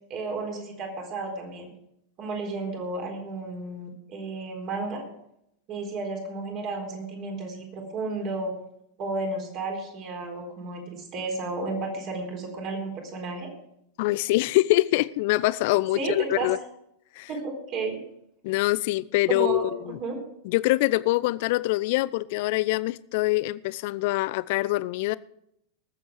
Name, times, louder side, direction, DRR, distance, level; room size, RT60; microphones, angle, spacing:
voice 1, 0.1-1.7 2.2-5.0 5.7-8.5 9.0-13.5 15.9-16.5 17.3-18.0 19.3-20.2, right 3 dB, 35° right, 1 dB, 4.0 m, -32 dB
voice 2, 14.0-16.6 17.2-17.3 18.4-20.0 20.4-25.2, left 19 dB, 50° left, 19 dB, 0.4 m, -24 dB
19.5 x 7.8 x 5.0 m, 0.76 s
figure-of-eight pair, 90°, 0 cm